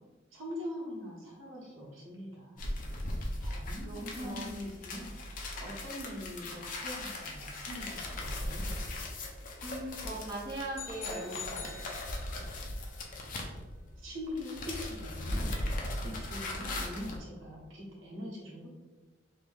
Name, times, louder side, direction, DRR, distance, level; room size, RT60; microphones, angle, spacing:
voice 1, 0.3-2.7 3.4-8.8 14.0-15.5 16.0-18.7, left 1 dB, 90° right, -4 dB, 1.1 m, -43 dB
sound 1, 2.6-14.0 14.3-17.2, left 1 dB, 45° left, 0.5 m, -38 dB
voice 2, 3.8-4.4 9.6-11.8, right 1 dB, 20° right, -5 dB, 0.6 m, -40 dB
sound 2, 10.7-12.6, left 7 dB, 80° left, 0.8 m, -44 dB
3.0 x 2.6 x 3.4 m, 1.2 s
head